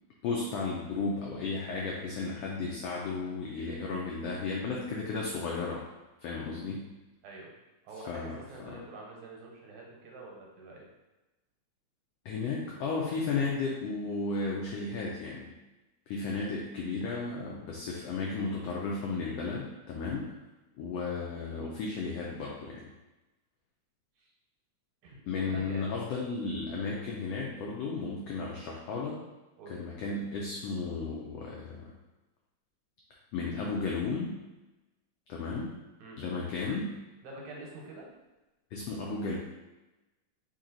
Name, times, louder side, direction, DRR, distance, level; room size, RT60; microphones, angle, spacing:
voice 1, 0.2-5.8 6.2-6.8 8.1-8.8 12.2-15.5 16.1-20.3 20.8-22.9 25.3-29.2 29.7-31.9 33.3-34.4 35.3-35.7 36.2-36.9 38.7-39.4, left 4 dB, 85° left, -3 dB, 1.4 m, -34 dB
voice 2, 7.8-10.9 24.2-24.3 25.0-26.0 29.6-29.8 36.0-36.2 37.2-38.1, right 2 dB, 75° right, -1 dB, 2.2 m, -46 dB
4.6 x 2.9 x 3.8 m, 1.1 s
omnidirectional pair, 3.4 m